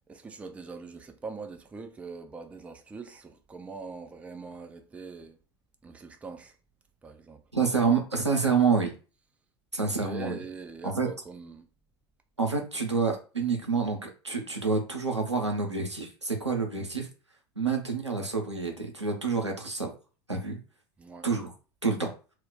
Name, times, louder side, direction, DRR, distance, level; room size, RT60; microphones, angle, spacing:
voice 1, 0.1-5.4 5.8-6.6 7.0-7.4 9.8-11.7 21.0-21.3, right 4 dB, 10° right, 0.4 m, -42 dB
voice 2, 7.5-8.9 9.7-10.4 10.8-11.1 12.4-17.1 17.6-19.9 20.3-20.6 21.2-21.5 21.8-22.1, right 5 dB, 90° right, 0.6 m, -28 dB
2.3 x 2.1 x 3.8 m
figure-of-eight pair, 80°, 14 cm